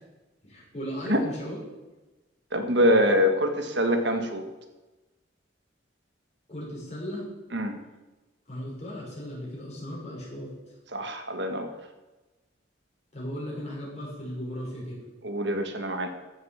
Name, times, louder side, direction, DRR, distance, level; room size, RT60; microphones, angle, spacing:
voice 1, 0.4-1.6 6.5-7.3 8.5-10.5 13.1-15.0, equal, 35° left, -4 dB, 6.0 m, -36 dB
voice 2, 2.5-4.4 7.5-7.7 10.9-11.7 15.2-16.1, equal, 65° right, 6 dB, 1.6 m, -24 dB
14.5 x 7.5 x 7.2 m, 1.1 s
head